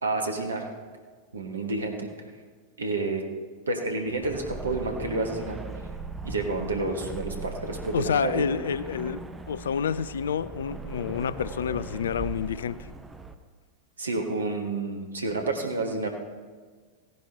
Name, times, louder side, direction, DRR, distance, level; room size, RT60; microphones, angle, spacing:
voice 1, 0.0-0.7 1.3-2.1 2.8-3.2 3.7-5.6 6.2-8.4 14.0-16.1, right 3 dB, 75° right, 3 dB, 1.5 m, -29 dB
sound 1, 4.1-13.4, right 3 dB, 10° right, 0.8 m, -39 dB
voice 2, 7.9-12.8, left 7 dB, 65° left, 17 dB, 0.4 m, -29 dB
16.5 x 10.5 x 3.4 m, 1.5 s
figure-of-eight pair, 90°, 0 cm